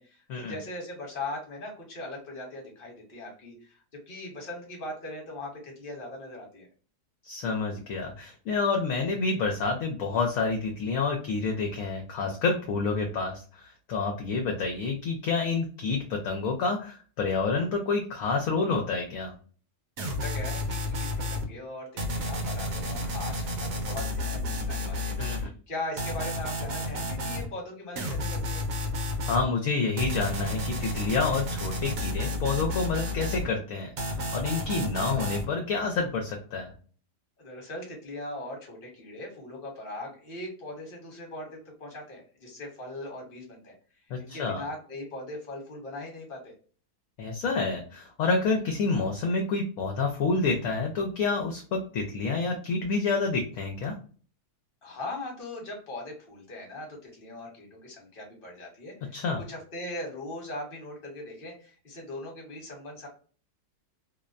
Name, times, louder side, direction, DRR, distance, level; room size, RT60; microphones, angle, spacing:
voice 1, 0.0-3.8 4.1-6.7 20.1-25.1 25.7-28.6 37.4-43.7 44.2-46.5 54.8-59.1 59.5-63.1, left 2 dB, 40° left, 0 dB, 1.1 m, -40 dB
voice 2, 7.2-19.3 25.2-25.5 29.3-36.7 44.1-44.6 47.2-53.9 59.1-59.4, left 4 dB, 65° left, 2 dB, 0.9 m, -28 dB
sound 1, 20.0-21.4 22.0-25.5 26.0-27.5 28.0-29.4 30.0-33.5 34.0-35.5, left 1 dB, 65° right, 1.1 m, -31 dB
2.7 x 2.1 x 2.4 m, 0.40 s
omnidirectional pair, 1.7 m